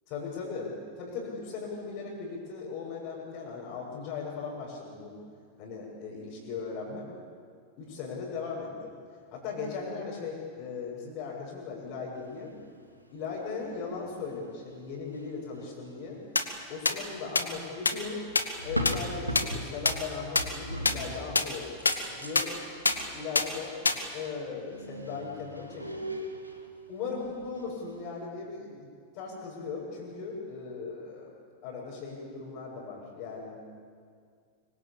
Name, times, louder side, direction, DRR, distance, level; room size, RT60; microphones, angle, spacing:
voice 1, 0.1-5.2 5.6-7.1 7.8-8.9 9.3-12.5 13.1-16.2 16.7-18.2 18.6-21.8 22.2-22.5 22.9-23.8 24.1-26.0 26.9-28.9 29.1-31.3 31.6-33.6, left 5 dB, 40° left, -7 dB, 7.2 m, -38 dB
sound 1, 12.5-12.6 13.6-13.8 14.0-15.9 18.3-20.1 20.4-21.4 21.8-23.1 24.0-24.1 24.3-26.6 26.9-27.7 28.0-28.2, equal, 85° right, 2.6 m, -38 dB
sound 2, 16.4-16.5 16.9-17.0 17.4-17.5 17.9-18.0 18.4-18.5 18.9-19.0 19.4-19.5 19.9-20.0 20.4-20.5 20.9-21.0 21.4-21.5 21.9-22.0 22.4-22.5 22.9-23.0 23.4-23.5 23.9-24.0, left 3 dB, 80° left, 1.9 m, -22 dB
25.5 x 25.0 x 8.4 m, 2.1 s
figure-of-eight pair, 90°, 0 cm